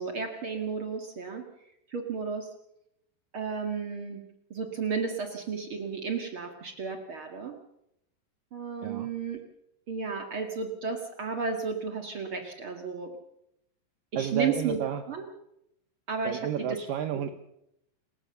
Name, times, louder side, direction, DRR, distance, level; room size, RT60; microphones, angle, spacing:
voice 1, 0.0-1.4 1.9-2.5 3.3-4.2 4.5-7.5 8.5-9.4 9.9-13.1 14.1-14.8 15.1-15.3 16.1-16.8 17.2-17.3, right 5 dB, 60° right, 4 dB, 1.4 m, -33 dB
voice 2, 14.2-15.0 16.2-17.3, right 9 dB, 85° right, 8 dB, 1.9 m, -31 dB
28.0 x 14.5 x 6.8 m, 0.80 s
omnidirectional pair, 5.4 m